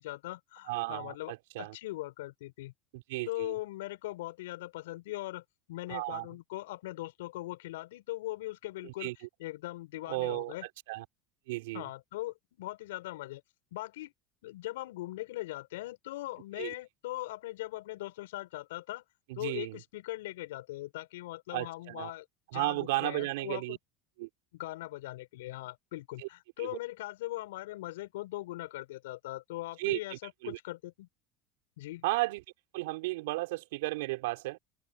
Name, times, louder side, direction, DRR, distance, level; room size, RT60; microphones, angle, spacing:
voice 1, 0.0-2.7 3.3-9.1 9.4-10.7 11.7-13.4 13.7-14.1 14.4-19.0 19.4-22.3 22.5-23.8 24.5-31.1 31.8-32.0, left 17 dB, 80° left, 5.3 m, -40 dB
voice 2, 0.7-1.8 2.9-3.6 5.9-6.3 8.8-9.2 10.1-11.0 11.5-11.9 16.6-16.7 19.3-19.8 21.5-22.1 22.5-23.8 24.2-24.3 26.2-26.3 26.6-26.7 29.8-30.6 32.0-32.4 32.7-34.6, right 21 dB, 75° right, 4.1 m, -34 dB
hypercardioid pair, 85°, 0 cm